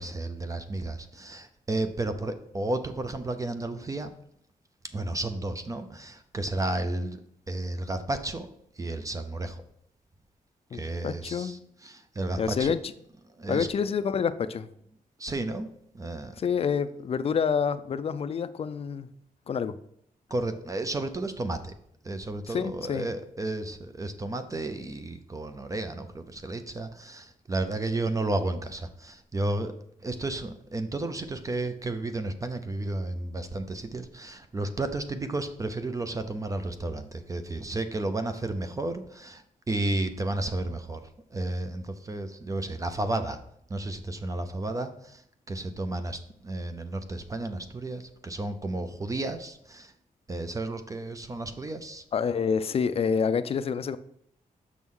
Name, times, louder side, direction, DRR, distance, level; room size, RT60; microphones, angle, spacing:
voice 1, 0.0-4.1 4.9-7.2 7.5-8.5 8.8-9.6 10.7-12.7 13.4-13.7 15.2-15.7 15.9-16.4 20.3-21.7 22.0-29.7 30.0-41.0 41.3-43.4 43.7-45.2 45.5-49.9 50.3-52.0, right 2 dB, 20° right, 9 dB, 0.4 m, -32 dB
voice 2, 10.7-11.6 12.4-12.8 13.5-14.7 16.4-19.1 19.5-19.8 22.5-23.1 52.1-54.0, left 6 dB, 40° left, 13 dB, 0.4 m, -28 dB
6.2 x 6.0 x 3.7 m, 0.72 s
wide cardioid pair, 175°, 15 cm